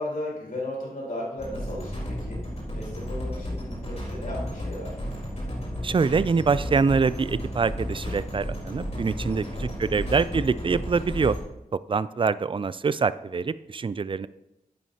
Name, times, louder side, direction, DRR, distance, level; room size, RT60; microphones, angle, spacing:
voice 1, 0.0-2.4 2.7-5.0 9.3-9.8, left 1 dB, 65° left, -4 dB, 3.9 m, -35 dB
sound 1, 1.4-11.4, equal, 45° left, 3.9 m, -33 dB
voice 2, 5.8-11.4 11.9-14.3, right 5 dB, 35° right, 16 dB, 0.3 m, -25 dB
11.0 x 9.0 x 2.9 m, 0.89 s
wide cardioid pair, 75°, 16 cm